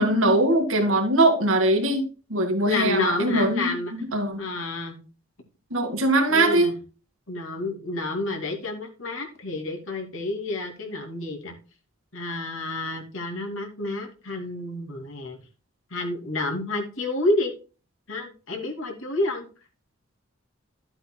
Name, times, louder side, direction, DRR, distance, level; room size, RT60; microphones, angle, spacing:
voice 1, 0.0-4.4 5.7-6.7, right 1 dB, 80° right, 4 dB, 2.2 m, -22 dB
voice 2, 2.6-3.9 4.4-5.0 6.3-6.7 7.3-11.5 12.1-15.4 15.9-17.5 18.1-19.5, left 2 dB, 75° left, 2 dB, 2.6 m, -29 dB
12.5 x 7.8 x 2.3 m, 0.34 s
head